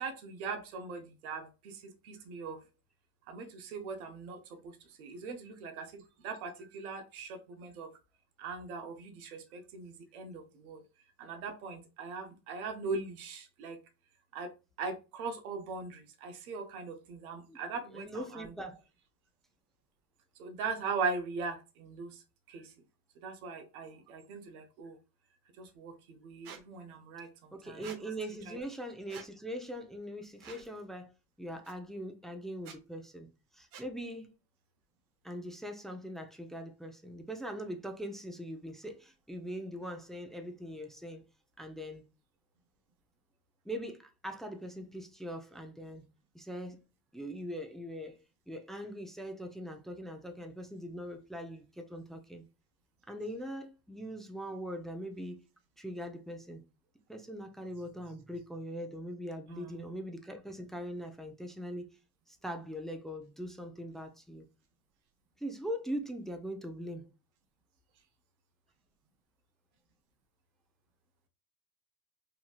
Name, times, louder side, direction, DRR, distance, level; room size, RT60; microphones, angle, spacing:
voice 1, 0.0-2.6 3.3-8.0 8.4-10.8 11.2-13.8 14.3-18.6 20.4-22.7 23.2-25.0 25.6-27.9 28.5-28.6 59.5-59.8, right 4 dB, 90° right, 0.6 m, -40 dB
voice 2, 17.9-18.8 27.5-31.1 31.4-33.3 33.5-34.3 35.2-41.2 41.6-42.0 43.6-46.0 46.3-46.8 47.1-48.2 48.5-52.4 53.1-55.4 55.8-56.6 57.1-61.9 62.3-64.5 65.4-67.1, equal, ahead, 0.4 m, -41 dB
Squeak, 26.4-26.6 27.8-28.0 29.1-29.3 30.4-30.7 31.6-31.7 32.6-32.8 33.7-33.9, right 7 dB, 55° right, 0.8 m, -48 dB
3.0 x 2.7 x 2.2 m
hypercardioid pair, 75°, 42 cm